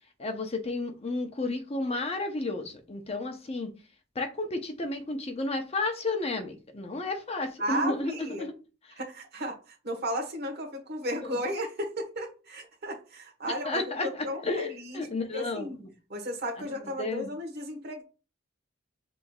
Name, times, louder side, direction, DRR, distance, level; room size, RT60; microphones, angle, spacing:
voice 1, 0.2-3.7 4.1-8.5 13.5-15.9 16.6-17.3, left 2 dB, 30° left, 0.8 m, -32 dB
voice 2, 7.6-8.5 9.0-15.1 15.3-15.8 16.1-18.0, equal, 55° right, 1.3 m, -34 dB
5.9 x 3.5 x 2.3 m
head